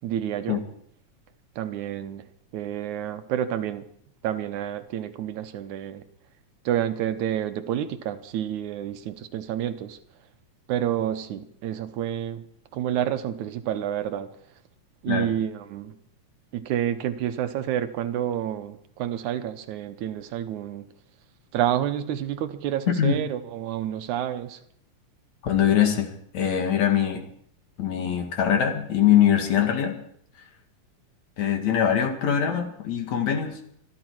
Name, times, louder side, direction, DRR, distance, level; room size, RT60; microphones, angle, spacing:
voice 1, 0.0-0.6 1.6-2.3 2.5-3.9 4.2-6.0 6.7-10.0 10.7-12.4 12.7-14.3 15.0-16.0 16.5-20.9 21.5-24.6, right 11 dB, 80° right, 10 dB, 2.3 m, -29 dB
voice 2, 22.9-23.2 25.4-27.2 27.8-30.0 31.4-33.6, left 9 dB, 65° left, 4 dB, 3.0 m, -22 dB
26.0 x 11.5 x 4.6 m, 0.66 s
omnidirectional pair, 3.5 m